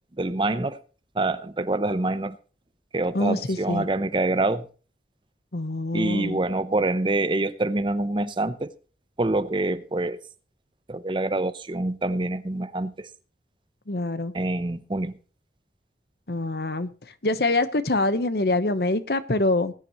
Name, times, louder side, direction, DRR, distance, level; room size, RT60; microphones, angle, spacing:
voice 1, 0.2-0.8 1.2-2.4 2.9-4.6 5.9-8.7 9.2-10.2 10.9-13.1 14.3-15.2, right 2 dB, 25° right, 0.7 m, -26 dB
voice 2, 3.1-3.9 5.5-6.4 13.9-14.3 16.3-16.9 17.2-19.7, left 2 dB, 60° left, 1.0 m, -25 dB
19.5 x 9.9 x 3.0 m
head